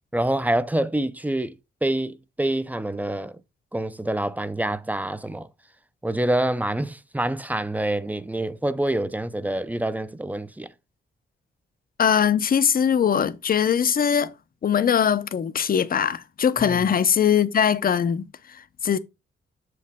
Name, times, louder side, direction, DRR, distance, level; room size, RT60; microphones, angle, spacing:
voice 1, 0.1-1.5 1.8-3.4 3.7-5.5 6.0-10.7 16.6-16.8, right 1 dB, 5° right, 0.4 m, -26 dB
voice 2, 12.0-14.3 14.6-19.0, left 8 dB, 45° left, 0.5 m, -21 dB
7.1 x 4.6 x 3.6 m
cardioid pair, 105°, 21 cm